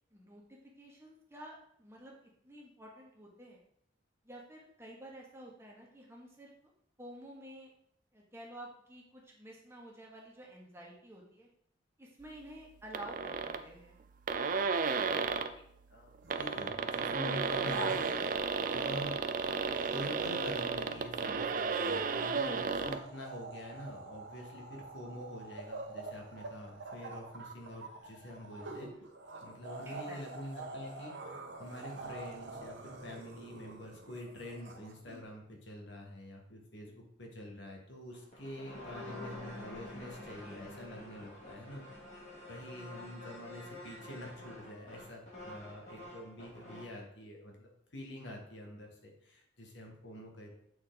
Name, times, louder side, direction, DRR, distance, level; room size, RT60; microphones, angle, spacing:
voice 1, 0.1-2.1 2.4-3.6 4.2-6.7 7.0-7.7 8.1-11.5 12.0-14.0 29.8-30.4, right 1 dB, 15° right, -2 dB, 1.3 m, -51 dB
sound 1, 12.9-13.6 14.0-14.1 14.3-15.5 16.1-23.0, right 5 dB, 45° right, 0.4 m, -33 dB
voice 2, 15.9-18.3 18.7-19.2 19.9-29.0 29.4-31.1 31.6-42.1 42.5-50.5, left 1 dB, 70° left, 1 dB, 1.5 m, -46 dB
sound 2, 16.2-16.7 17.2-19.3 19.6-35.2, right 2 dB, 70° right, 1.1 m, -47 dB
sound 3, 38.1-47.0, left 1 dB, 40° left, 2.2 m, -48 dB
7.8 x 4.3 x 3.9 m, 0.69 s
head